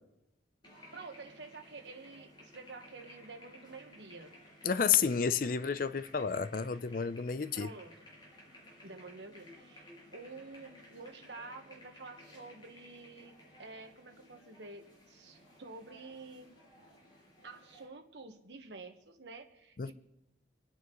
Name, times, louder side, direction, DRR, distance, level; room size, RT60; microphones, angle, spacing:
sound 1, 0.6-17.9, left 1 dB, 25° left, 6.1 m, -57 dB
voice 1, 0.9-4.3 7.5-7.9 8.8-13.3 13.6-16.5 17.4-19.9, right 3 dB, 75° right, 1.3 m, -49 dB
voice 2, 4.6-7.7 19.8-19.9, left 6 dB, 50° left, 0.5 m, -30 dB
28.0 x 9.5 x 3.1 m
head